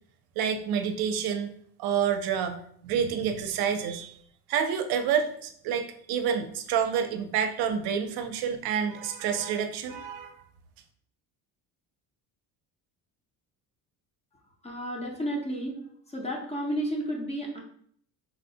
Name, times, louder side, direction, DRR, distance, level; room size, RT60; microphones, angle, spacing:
voice 1, 0.4-1.5 1.8-4.2 4.5-10.4, right 7 dB, 70° right, 7 dB, 0.5 m, -28 dB
voice 2, 14.6-15.8 16.1-17.6, equal, 15° left, 0 dB, 0.4 m, -32 dB
3.9 x 2.0 x 2.7 m, 0.63 s
cardioid pair, 145°, 39 cm